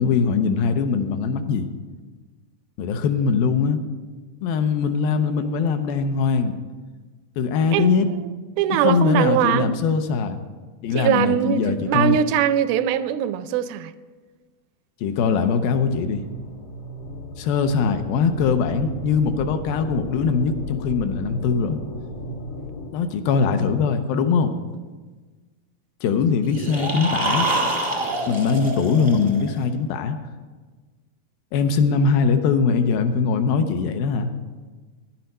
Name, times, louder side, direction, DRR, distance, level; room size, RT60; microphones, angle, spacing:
voice 1, 0.0-1.7 2.8-3.8 4.4-6.6 7.4-8.1 8.8-10.4 10.8-12.2 15.0-16.2 17.4-21.8 22.9-24.5 26.0-27.5 28.3-30.2 31.5-34.3, left 5 dB, 80° left, 2.5 m, -21 dB
voice 2, 7.7-9.8 11.0-13.9, right 10 dB, 85° right, 2.3 m, -22 dB
sound 1, 15.9-22.9, right 1 dB, 65° left, 1.4 m, -35 dB
sound 2, 26.4-29.6, right 1 dB, 30° right, 0.4 m, -26 dB
11.0 x 10.0 x 5.4 m
omnidirectional pair, 4.3 m